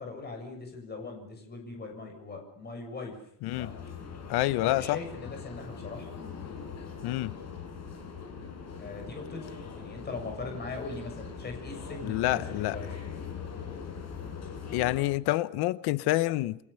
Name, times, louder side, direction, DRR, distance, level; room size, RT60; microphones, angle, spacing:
voice 1, 0.0-3.2 3.6-3.7 4.6-6.1 8.8-12.9, left 3 dB, 25° left, 7.1 m, -40 dB
sound 1, 3.5-15.0, left 6 dB, 45° left, 6.8 m, -41 dB
voice 2, 4.3-5.0 7.0-7.3 12.0-12.8 14.7-16.6, left 17 dB, 80° left, 1.0 m, -27 dB
28.5 x 24.0 x 7.0 m
cardioid pair, 160°, 38 cm